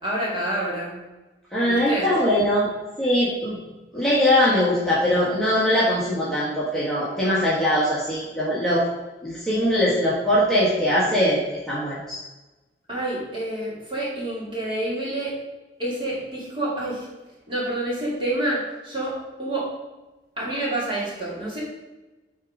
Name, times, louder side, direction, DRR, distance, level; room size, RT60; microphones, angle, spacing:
voice 1, 0.0-1.0 1.7-2.1 12.9-15.3 15.8-17.1 17.5-19.7 20.4-21.6, right 1 dB, 30° right, -6 dB, 2.2 m, -28 dB
voice 2, 1.5-2.7 3.0-3.6 3.9-8.8 9.2-11.4 11.7-12.2, equal, 5° left, -9 dB, 1.5 m, -21 dB
8.6 x 3.7 x 4.9 m, 1.1 s
head